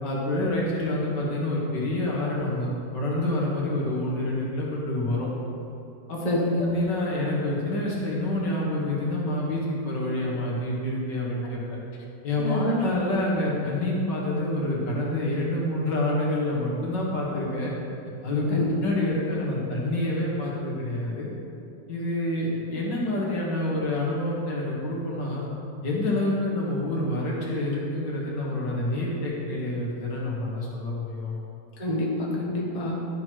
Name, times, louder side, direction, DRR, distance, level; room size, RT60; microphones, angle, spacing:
voice 1, 0.0-5.3 6.1-6.2 6.7-11.8 12.2-17.7 18.2-18.6 18.8-21.3 21.9-25.5 25.8-31.3, left 1 dB, 85° left, -4 dB, 2.4 m, -27 dB
voice 2, 6.2-6.6 12.4-12.8 18.5-18.8 19.2-19.3 31.8-33.0, left 1 dB, 25° left, -3 dB, 1.3 m, -27 dB
11.5 x 6.1 x 4.7 m, 2.7 s
omnidirectional pair, 1.9 m